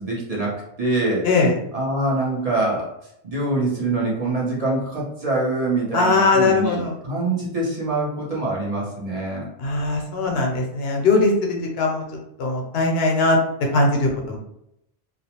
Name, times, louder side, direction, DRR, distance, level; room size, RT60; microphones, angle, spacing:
voice 1, 0.0-1.3 1.7-2.9 3.2-9.5, right 2 dB, 40° right, -5 dB, 0.7 m, -24 dB
voice 2, 5.9-7.0 9.6-12.0 12.4-13.4 13.7-14.4, left 3 dB, 75° left, 1 dB, 0.8 m, -20 dB
2.4 x 2.0 x 2.8 m, 0.79 s
omnidirectional pair, 1.1 m